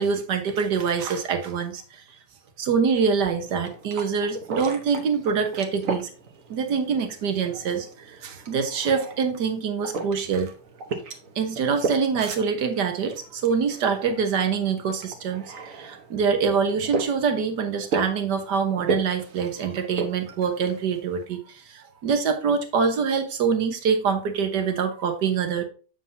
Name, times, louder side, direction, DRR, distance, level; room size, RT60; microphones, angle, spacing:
voice 1, 0.0-1.8 2.6-6.1 6.5-10.5 11.4-25.6, right 6 dB, 75° right, 7 dB, 1.8 m, -25 dB
sound 1, 3.4-21.3, right 3 dB, 55° right, 1.3 m, -35 dB
7.5 x 7.1 x 2.7 m, 0.36 s
omnidirectional pair, 1.8 m